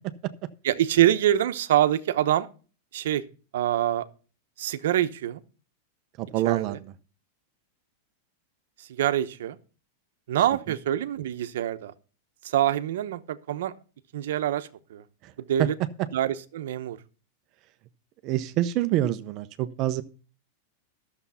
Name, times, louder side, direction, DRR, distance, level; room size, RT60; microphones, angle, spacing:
voice 1, 0.6-2.5 2.9-3.2 3.5-4.1 4.6-5.4 6.4-6.8 9.0-9.6 10.3-11.9 12.4-13.7 14.1-15.0 15.5-15.7 16.1-17.0, right 12 dB, 75° right, 13 dB, 0.9 m, -25 dB
voice 2, 6.2-6.9 15.2-15.3 15.6-15.7 18.2-20.0, right 13 dB, 40° right, 11 dB, 0.7 m, -26 dB
12.0 x 7.0 x 5.6 m, 0.37 s
supercardioid pair, 155°, 0 cm